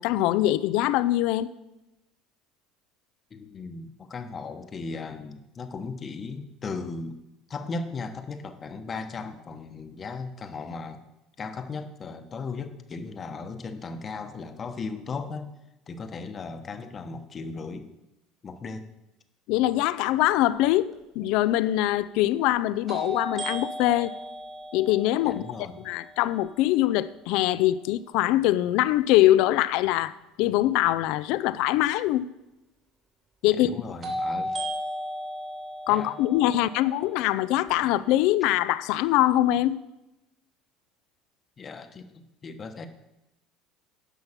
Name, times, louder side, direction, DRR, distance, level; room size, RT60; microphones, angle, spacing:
voice 1, 0.0-1.5 19.5-24.1 24.7-25.4 25.8-30.1 30.4-32.3 33.4-33.7 35.9-39.8, left 14 dB, 70° left, 0.5 m, -23 dB
voice 2, 3.3-7.2 7.5-11.0 11.4-15.5 15.9-17.9 18.4-18.9 25.2-25.8 33.5-34.5 35.9-36.2 41.6-42.9, left 4 dB, 30° left, 1.1 m, -37 dB
sound 1, 20.9-21.0 22.9-26.8 34.0-38.0, equal, 35° right, 2.8 m, -36 dB
10.5 x 5.7 x 7.3 m
supercardioid pair, 105°, 0 cm